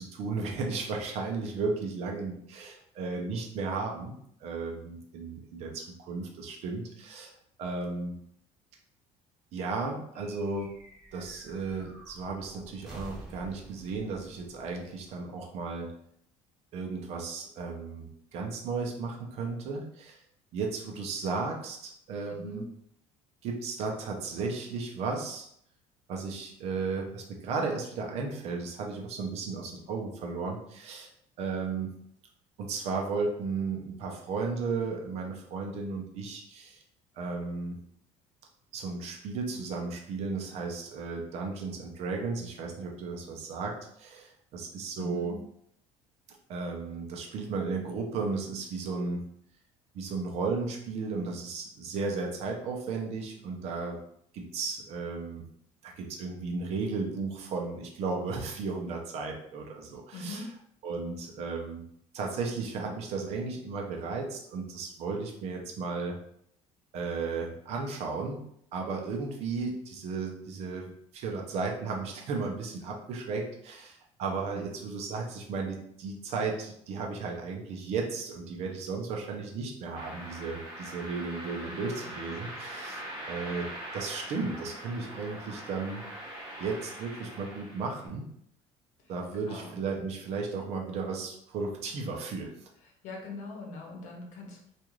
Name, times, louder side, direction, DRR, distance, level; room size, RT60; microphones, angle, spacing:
voice 1, 0.0-4.1 4.4-7.3 7.6-8.2 9.5-10.7 11.1-15.9 16.7-20.2 20.5-22.6 23.4-25.5 26.1-31.1 31.4-31.9 32.6-36.8 37.2-37.8 38.7-45.3 46.5-49.2 49.9-54.0 54.3-55.4 55.8-60.4 60.8-61.9 62.1-66.2 66.9-68.4 68.7-86.0 86.6-88.2 89.1-92.5, right 4 dB, 55° right, 1 dB, 0.6 m, -34 dB
sound 1, 10.1-15.8, right 1 dB, 5° right, 0.6 m, -50 dB
voice 2, 22.3-22.6 45.0-45.4 60.1-60.4 81.6-82.2 89.0-89.1 89.5-89.7 92.8-94.7, left 3 dB, 75° left, 0 dB, 0.8 m, -42 dB
sound 2, 80.0-88.1, right 1 dB, 25° right, 1.3 m, -42 dB
2.5 x 2.4 x 3.0 m, 0.69 s
cardioid pair, 150°, 13 cm